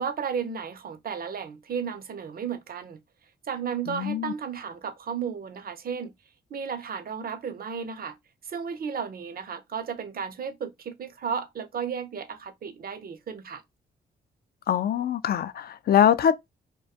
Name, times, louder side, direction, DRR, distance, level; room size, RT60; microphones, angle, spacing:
voice 1, 0.0-3.0 3.5-6.1 6.5-8.2 8.4-13.6, right 6 dB, 45° right, 0.6 m, -33 dB
voice 2, 3.9-4.3 14.7-16.3, left 9 dB, 50° left, 0.4 m, -23 dB
2.2 x 2.2 x 2.6 m
supercardioid pair, 50°, 21 cm